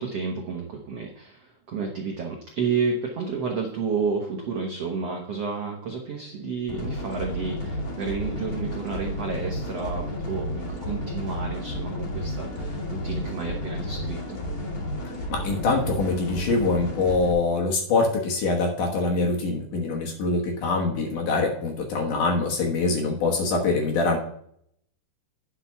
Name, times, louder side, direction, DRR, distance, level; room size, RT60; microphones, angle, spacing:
voice 1, 0.0-14.4, right 5 dB, 90° right, 0 dB, 1.3 m, -31 dB
sound 1, 6.7-17.3, left 1 dB, 25° left, 2.3 m, -32 dB
voice 2, 15.3-24.2, left 3 dB, 65° left, 0 dB, 2.3 m, -24 dB
10.5 x 5.9 x 5.8 m, 0.68 s
omnidirectional pair, 4.8 m